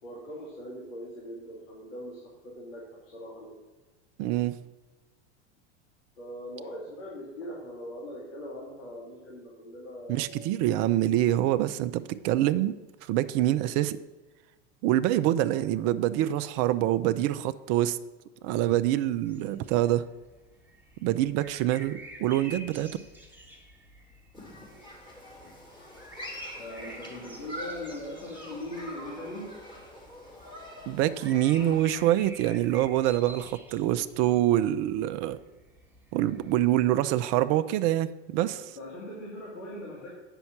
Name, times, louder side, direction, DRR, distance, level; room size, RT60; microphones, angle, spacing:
voice 1, 0.0-3.5 6.2-10.5 26.5-29.5 38.8-40.1, left 1 dB, 80° left, -4 dB, 2.4 m, -41 dB
voice 2, 4.2-4.6 10.1-12.7 13.1-14.0 14.8-18.0 18.4-20.1 21.0-22.9 30.9-35.4 36.1-38.6, right 13 dB, 45° right, 13 dB, 0.5 m, -25 dB
sound 1, 19.3-36.6, right 1 dB, 5° right, 1.5 m, -50 dB
Human group actions, 24.3-32.0, equal, 15° left, 2.6 m, -44 dB
8.0 x 5.4 x 5.9 m, 1.2 s
hypercardioid pair, 95°, 36 cm